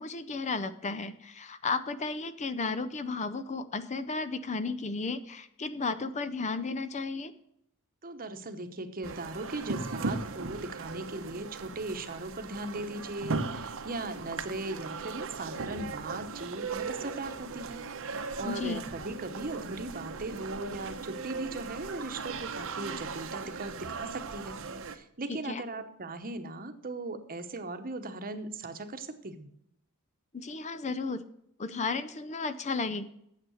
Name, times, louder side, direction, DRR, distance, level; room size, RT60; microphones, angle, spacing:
voice 1, 0.0-7.3 18.4-18.8 25.3-25.6 30.3-31.2 31.6-33.0, left 4 dB, 30° left, 13 dB, 0.5 m, -34 dB
voice 2, 8.0-24.6 24.9-29.5, right 2 dB, 40° right, 8 dB, 1.0 m, -38 dB
sound 1, 9.0-25.0, right 4 dB, 65° right, 0.8 m, -38 dB
9.2 x 7.7 x 6.3 m, 0.75 s
head